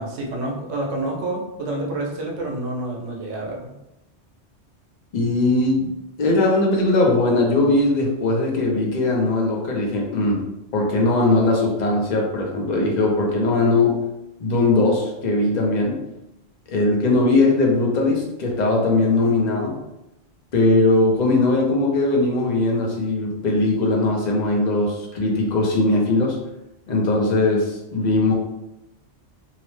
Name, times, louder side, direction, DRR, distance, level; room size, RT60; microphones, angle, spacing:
voice 1, 0.0-3.7, right 2 dB, 90° right, -2 dB, 1.0 m, -28 dB
voice 2, 5.1-5.9 6.2-14.0 14.4-16.0 16.7-19.8 20.5-26.4 26.9-28.3, left 2 dB, 50° left, -1 dB, 0.6 m, -20 dB
2.8 x 2.0 x 3.1 m, 0.89 s
omnidirectional pair, 1.2 m